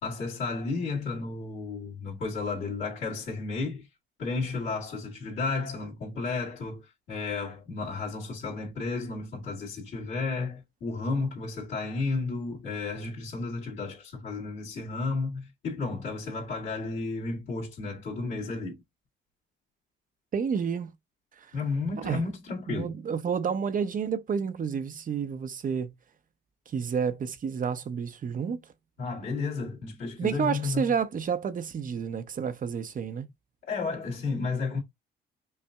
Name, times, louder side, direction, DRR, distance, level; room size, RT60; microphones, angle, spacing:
voice 1, 0.0-3.9 4.2-18.8 21.5-22.9 29.0-30.8 33.6-34.8, left 4 dB, 75° left, 2.1 m, -32 dB
voice 2, 20.3-20.9 21.4-21.5 22.0-22.2 22.7-25.9 26.7-28.6 30.2-33.3, right 6 dB, 45° right, 0.7 m, -30 dB
5.5 x 2.6 x 2.3 m
cardioid pair, 90°, 20 cm